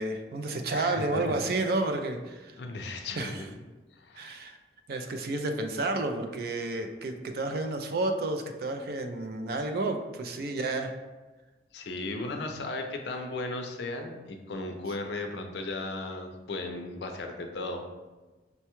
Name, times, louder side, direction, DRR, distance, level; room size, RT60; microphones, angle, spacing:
voice 1, 0.0-2.5 3.2-3.4 4.2-4.6 4.9-10.9, right 2 dB, 55° right, 6 dB, 0.4 m, -31 dB
voice 2, 0.7-1.3 2.6-3.5 4.0-4.3 11.7-17.8, left 2 dB, 65° left, 4 dB, 0.5 m, -36 dB
5.4 x 2.2 x 2.9 m, 1.2 s
head